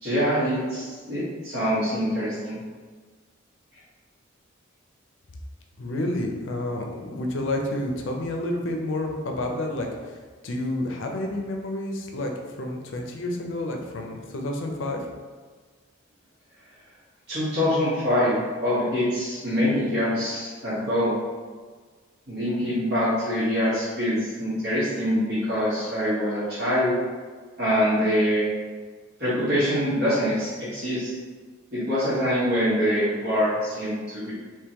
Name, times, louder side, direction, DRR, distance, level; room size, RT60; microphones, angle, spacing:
voice 1, 0.0-2.6 17.3-21.2 22.3-27.0 27.6-28.5 29.2-31.1 31.7-34.3, equal, 55° right, -13 dB, 1.3 m, -24 dB
voice 2, 5.8-9.9 10.4-12.3 12.6-15.0, left 1 dB, 65° left, 2 dB, 0.5 m, -29 dB
3.6 x 3.0 x 2.9 m, 1.5 s
head